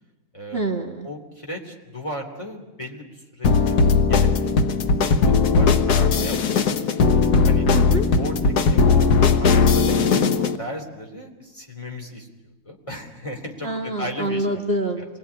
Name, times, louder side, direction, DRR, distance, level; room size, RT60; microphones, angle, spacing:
voice 1, 0.5-1.1 6.0-6.3 7.7-8.1 13.6-15.0, right 2 dB, 40° right, 3 dB, 1.8 m, -26 dB
voice 2, 1.0-4.5 4.9-6.5 7.4-7.6 8.2-9.1 9.4-12.3 12.6-14.6 15.0-15.1, left 1 dB, 20° left, 2 dB, 3.3 m, -35 dB
sound 1, 3.4-10.6, left 5 dB, 80° left, 1.6 m, -18 dB
27.5 x 21.5 x 9.8 m, 1.1 s
omnidirectional pair, 1.6 m